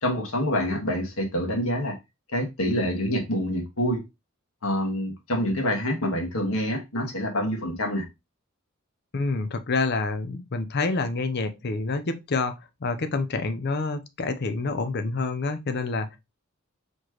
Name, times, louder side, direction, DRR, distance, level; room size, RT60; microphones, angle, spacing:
voice 1, 0.0-1.9 2.3-4.0 4.6-8.0, equal, 85° left, 1.5 m, -26 dB
voice 2, 9.1-12.5 12.8-16.2, left 3 dB, 50° left, 0.6 m, -27 dB
4.3 x 3.2 x 2.9 m
head